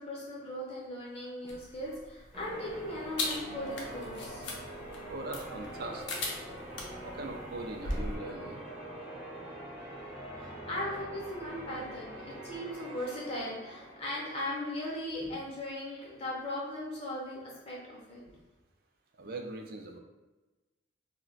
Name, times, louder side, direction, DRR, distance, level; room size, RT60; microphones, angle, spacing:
voice 1, 0.0-4.5 10.4-17.4 17.6-18.2, left 1 dB, 30° left, -5 dB, 0.8 m, -38 dB
sound 1, 1.5-8.2, left 2 dB, 65° left, 0.6 m, -40 dB
Church bell, 2.3-14.6, right 1 dB, 5° right, 0.7 m, -44 dB
voice 2, 5.1-6.2 7.0-8.6 19.2-20.0, right 2 dB, 50° right, 3 dB, 0.4 m, -40 dB
2.4 x 2.1 x 3.8 m, 1.1 s
head